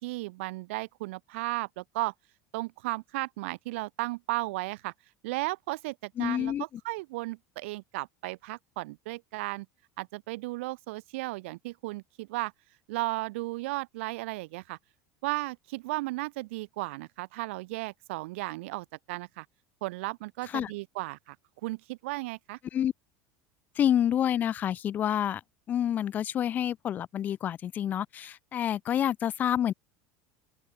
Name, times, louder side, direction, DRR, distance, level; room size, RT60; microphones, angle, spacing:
voice 1, 0.0-2.1 2.5-4.9 5.2-9.7 10.0-12.5 12.9-14.8 15.2-19.4 19.8-21.3 21.6-22.6, right 21 dB, 85° right, 1.4 m, -35 dB
voice 2, 6.2-6.6 20.5-20.7 22.7-22.9 23.8-25.4 25.7-29.7, left 10 dB, 25° left, 0.9 m, -28 dB
open air
cardioid pair, 170°, 7 cm